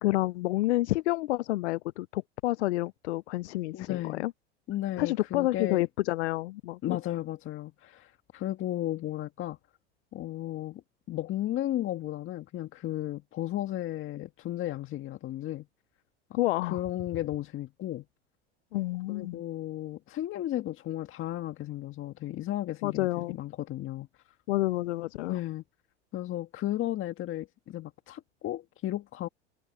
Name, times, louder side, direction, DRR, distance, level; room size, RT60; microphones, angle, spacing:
voice 1, 0.0-4.3 5.0-7.0 16.4-16.8 18.7-19.4 22.8-23.4 24.5-25.4, left 18 dB, 75° left, 0.6 m, -29 dB
voice 2, 3.7-4.3 4.7-5.8 6.8-9.6 10.1-10.8 11.1-15.7 16.3-18.1 19.1-24.1 25.2-25.6 26.1-29.3, left 14 dB, 35° left, 1.8 m, -34 dB
hypercardioid pair, 100°, 34 cm